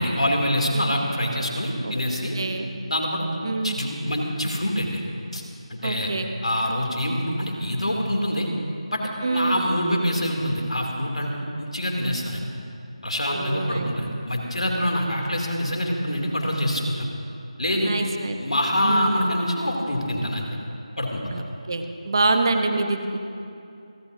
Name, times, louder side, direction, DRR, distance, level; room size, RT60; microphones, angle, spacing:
voice 1, 0.0-2.3 2.9-3.3 3.6-5.0 5.3-5.4 5.7-6.1 6.4-8.5 8.9-9.0 9.3-12.4 13.0-17.1 17.6-17.9 18.4-20.4 21.0-21.2, equal, 85° left, 0 dB, 2.9 m, -25 dB
voice 2, 2.3-2.7 3.4-3.8 5.8-6.3 9.2-9.6 13.3-13.9 17.8-18.4 18.8-19.2 21.3-23.2, right 3 dB, 45° right, 6 dB, 1.0 m, -26 dB
28.5 x 12.0 x 2.8 m, 2.6 s
figure-of-eight pair, 165°, 3 cm